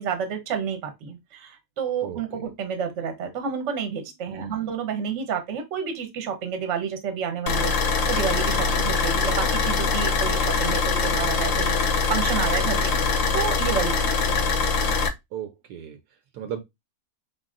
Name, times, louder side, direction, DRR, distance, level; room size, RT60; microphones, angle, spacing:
voice 1, 0.0-12.9 13.3-14.2, right 7 dB, 50° right, 1.1 m, -30 dB
voice 2, 2.0-2.5 4.3-4.7 8.5-8.8 12.6-12.9 15.3-16.0 16.3-16.6, right 9 dB, 75° right, 1.1 m, -37 dB
sound 1, 7.5-15.1, left 4 dB, 60° left, 1.0 m, -23 dB
4.4 x 3.9 x 2.5 m
omnidirectional pair, 1.8 m